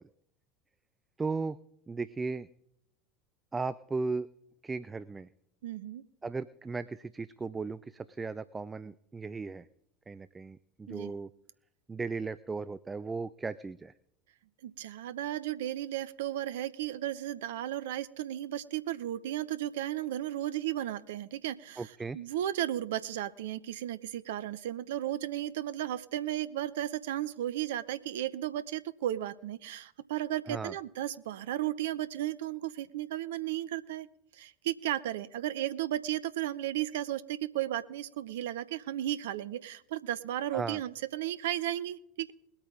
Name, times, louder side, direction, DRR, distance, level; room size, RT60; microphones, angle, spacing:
voice 1, 1.2-1.6 1.9-2.5 3.5-4.3 4.6-5.3 6.2-9.7 10.1-11.3 11.9-13.9 21.8-22.2 30.5-30.7 40.5-40.8, right 4 dB, 15° right, 16 dB, 0.5 m, -36 dB
voice 2, 5.6-6.0 10.9-11.1 14.6-34.1 34.3-42.3, right 13 dB, 65° right, 15 dB, 0.6 m, -34 dB
21.0 x 8.9 x 3.7 m, 0.74 s
figure-of-eight pair, 75°, 0 cm